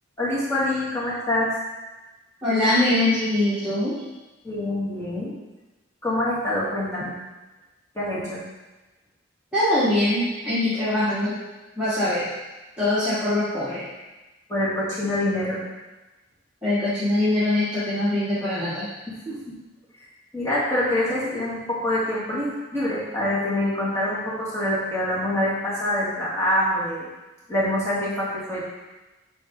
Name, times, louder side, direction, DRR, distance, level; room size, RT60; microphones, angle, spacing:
voice 1, 0.2-1.5 4.4-5.3 6.0-7.1 7.9-8.4 14.5-15.6 19.1-19.5 20.3-27.1 27.5-28.6, left 1 dB, 15° left, -9 dB, 2.3 m, -25 dB
voice 2, 2.4-4.0 9.5-11.4 11.8-12.3 12.8-13.8 16.6-18.9, left 1 dB, 5° right, -13 dB, 2.0 m, -22 dB
8.2 x 4.4 x 3.8 m, 1.1 s
head